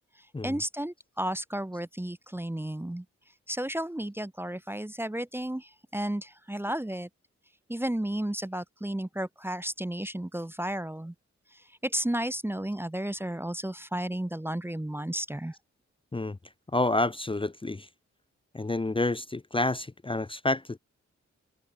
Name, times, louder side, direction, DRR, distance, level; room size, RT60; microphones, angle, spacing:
voice 1, 0.2-3.0 3.5-7.1 7.7-11.1 11.5-15.6, right 1 dB, 10° right, 0.9 m, -33 dB
voice 2, 16.7-17.9 18.5-20.8, left 2 dB, 20° left, 0.8 m, -29 dB
cardioid pair, 60°, 29 cm